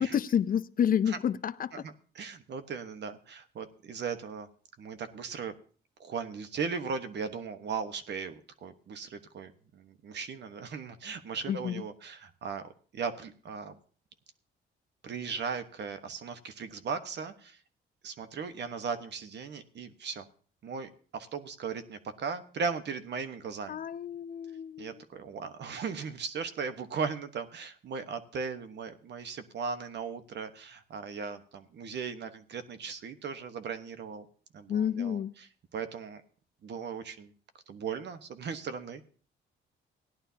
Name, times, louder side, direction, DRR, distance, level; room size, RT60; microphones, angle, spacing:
voice 1, 0.0-1.9 11.5-11.8 23.7-25.0 34.7-35.3, left 8 dB, 45° left, 0.5 m, -29 dB
voice 2, 1.7-4.5 4.8-5.5 6.0-13.8 15.0-17.6 18.0-20.3 20.6-23.8 24.8-34.3 34.5-35.2 35.7-36.2 36.6-37.3 37.7-39.0, right 5 dB, 60° right, 1.3 m, -37 dB
17.5 x 11.0 x 2.8 m
cardioid pair, 90°, 20 cm